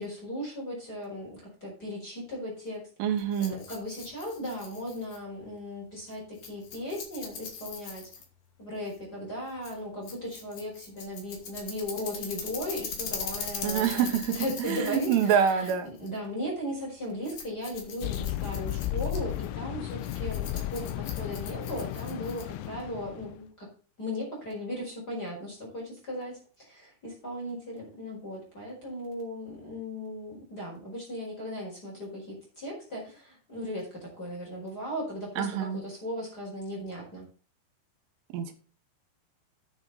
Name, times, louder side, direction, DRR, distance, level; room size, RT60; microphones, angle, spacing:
voice 1, 0.0-3.1 3.4-8.1 8.6-14.1 14.3-23.7 24.0-37.3, equal, 20° left, -2 dB, 4.9 m, -37 dB
voice 2, 3.0-3.6 13.6-14.3 14.6-15.9 35.4-35.8 38.3-38.5, right 8 dB, 75° right, 7 dB, 3.7 m, -26 dB
Rattle, 3.2-22.7, left 6 dB, 45° left, 3.3 m, -42 dB
sound 1, 18.0-23.4, left 14 dB, 85° left, 3.3 m, -34 dB
10.5 x 9.0 x 4.1 m, 0.37 s
omnidirectional pair, 5.9 m